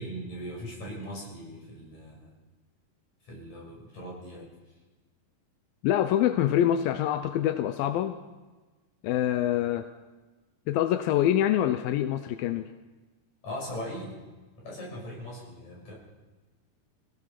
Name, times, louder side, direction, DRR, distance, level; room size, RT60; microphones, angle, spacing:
voice 1, 0.0-2.3 3.2-4.5 13.4-14.2 14.6-15.9, equal, 55° left, -2 dB, 7.7 m, -39 dB
voice 2, 5.8-8.2 9.0-9.9 10.7-12.7, left 11 dB, 90° left, 9 dB, 2.6 m, -25 dB
25.5 x 17.5 x 5.9 m, 1.2 s
omnidirectional pair, 4.0 m